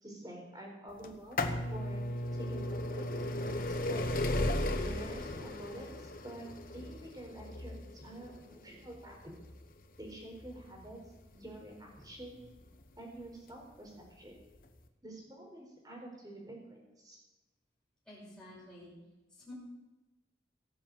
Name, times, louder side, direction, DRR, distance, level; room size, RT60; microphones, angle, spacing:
voice 1, 0.0-1.4 1.7-2.0 2.3-4.1 4.8-9.3 10.0-11.0 11.3-12.4 13.0-14.3 15.0-17.2, right 1 dB, 20° right, 0 dB, 4.2 m, -48 dB
sound 1, 1.0-12.7 13.5-13.6 14.6-14.7 14.8-14.9, left 1 dB, 50° left, 1.1 m, -36 dB
voice 2, 18.1-18.9 19.3-19.5, left 1 dB, 5° left, -8 dB, 5.7 m, -51 dB
17.5 x 7.7 x 7.9 m, 1.1 s
head